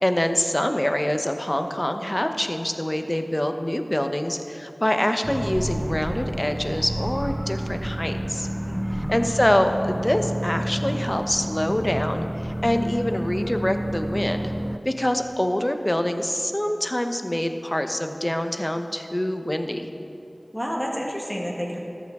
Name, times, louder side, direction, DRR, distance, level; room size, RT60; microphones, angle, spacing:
voice 1, 0.0-8.5 9.1-14.5 14.8-19.9, left 1 dB, 25° left, 7 dB, 0.7 m, -25 dB
sound 1, 5.2-14.8, equal, 15° right, 0.4 m, -29 dB
voice 2, 8.7-9.2 20.5-21.8, equal, ahead, -1 dB, 1.6 m, -30 dB
13.5 x 8.3 x 3.5 m, 2.8 s
wide cardioid pair, 45°, 0 cm